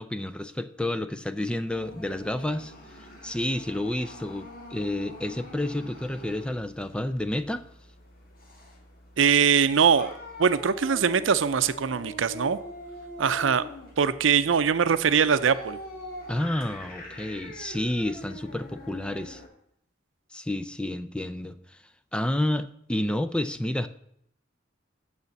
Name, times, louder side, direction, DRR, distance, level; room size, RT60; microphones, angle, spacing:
voice 1, 0.0-2.7 3.2-7.6 16.3-19.4 20.3-21.8 22.1-23.9, left 1 dB, 5° left, 11 dB, 0.4 m, -30 dB
sound 1, 1.7-19.5, left 1 dB, 50° left, 1.8 m, -44 dB
voice 2, 9.2-10.1 10.4-12.6 13.2-13.6 14.0-15.8, right 6 dB, 80° right, 13 dB, 0.6 m, -22 dB
7.0 x 6.7 x 7.0 m, 0.72 s
head